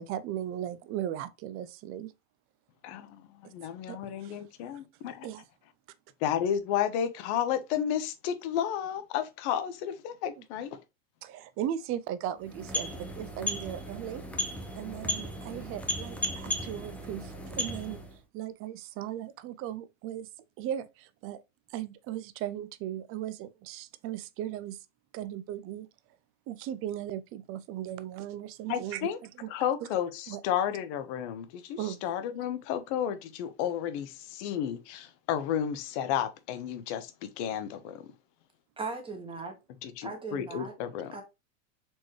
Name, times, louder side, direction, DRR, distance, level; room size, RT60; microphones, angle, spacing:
voice 1, 0.0-2.1 3.4-3.5 3.9-4.8 5.2-5.4 10.4-10.5 11.2-14.2 14.8-20.3 20.6-21.4 21.7-24.9 25.1-25.9 26.5-29.5 30.3-30.4 31.8-32.1, right 11 dB, 35° right, 0.4 m, -37 dB
voice 2, 2.8-3.2 3.5-5.3 6.2-10.8 28.7-29.2 29.5-38.1 39.8-41.2, left 9 dB, 60° left, 0.8 m, -32 dB
sound 1, 12.4-18.2, left 1 dB, 5° left, 0.6 m, -35 dB
voice 3, 38.8-39.6 40.0-40.7 41.1-41.2, right 3 dB, 15° right, 1.2 m, -38 dB
4.4 x 3.1 x 3.0 m
supercardioid pair, 120°, 39 cm